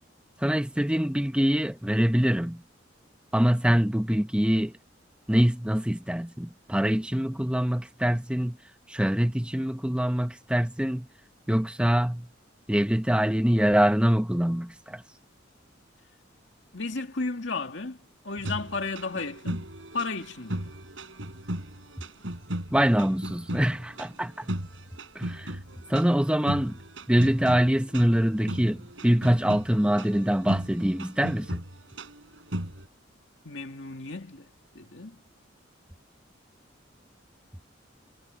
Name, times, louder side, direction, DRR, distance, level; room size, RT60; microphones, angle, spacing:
voice 1, 0.4-2.6 3.3-4.7 5.3-8.6 8.9-11.1 11.5-12.3 12.7-15.0 22.7-24.5 25.1-25.5 25.9-26.8 27.1-31.6, equal, 5° right, 0.9 m, -24 dB
voice 2, 16.7-18.0 18.2-19.7 19.9-20.7 33.4-34.5 34.7-35.2, left 3 dB, 70° left, 2.4 m, -33 dB
sound 1, 18.4-32.9, right 1 dB, 85° right, 5.0 m, -37 dB
head